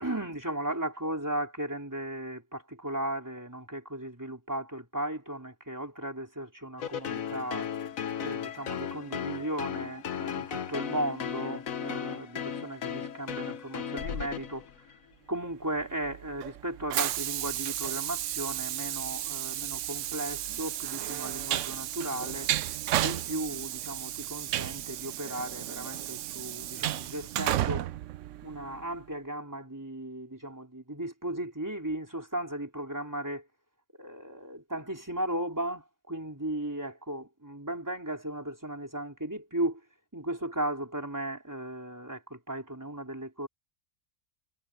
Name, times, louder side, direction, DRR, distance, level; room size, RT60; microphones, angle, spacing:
voice 1, 0.0-7.7 8.2-14.7 15.3-22.5 23.0-27.9 28.4-33.4 34.0-39.8 40.1-43.5, right 1 dB, 15° right, 4.0 m, -36 dB
sound 1, 6.8-14.9, left 8 dB, 85° left, 1.5 m, -35 dB
Train, 15.8-28.9, right 13 dB, 70° right, 0.9 m, -33 dB
omnidirectional pair, 1.4 m